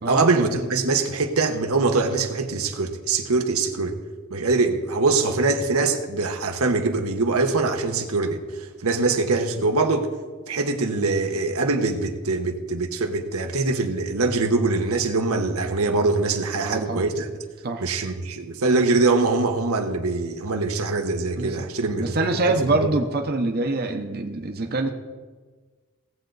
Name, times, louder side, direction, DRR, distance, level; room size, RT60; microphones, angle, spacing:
voice 1, 0.1-4.0 4.3-8.4 8.8-10.1 10.5-17.3 17.8-22.1 22.5-22.9, right 3 dB, 85° right, 5 dB, 1.0 m, -23 dB
voice 2, 16.6-17.1 17.6-17.8 21.4-21.5 22.0-24.9, right 2 dB, 45° right, 5 dB, 0.8 m, -25 dB
17.5 x 7.8 x 4.0 m, 1.4 s
head